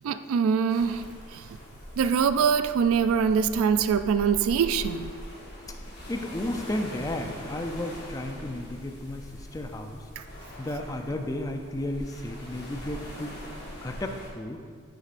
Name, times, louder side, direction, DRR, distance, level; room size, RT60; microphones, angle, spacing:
voice 1, 0.0-1.0 1.3-1.6 2.0-5.1 10.2-10.3, right 6 dB, 90° right, 12 dB, 0.3 m, -24 dB
sound 1, 0.7-14.3, equal, 55° left, 1.5 m, -42 dB
voice 2, 6.1-10.0 10.6-13.4 13.8-14.6, left 1 dB, 15° left, 5 dB, 0.4 m, -33 dB
9.3 x 6.3 x 2.5 m, 2.1 s
head